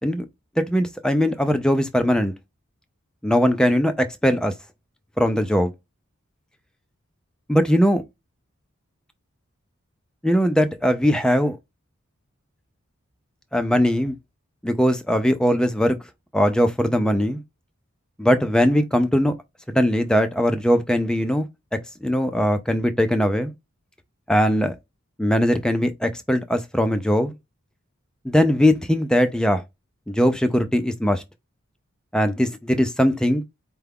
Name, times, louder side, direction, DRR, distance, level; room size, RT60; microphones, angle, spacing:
voice 1, 0.6-2.3 3.2-4.5 5.2-5.7 7.5-8.0 10.2-11.6 13.5-14.2 14.6-16.0 16.3-17.4 18.2-19.3 19.7-21.5 22.0-23.5 24.3-24.7 25.2-27.4 28.2-29.6 30.1-31.2 32.1-33.4, equal, 5° left, 0.4 m, -20 dB
4.7 x 2.2 x 3.5 m
head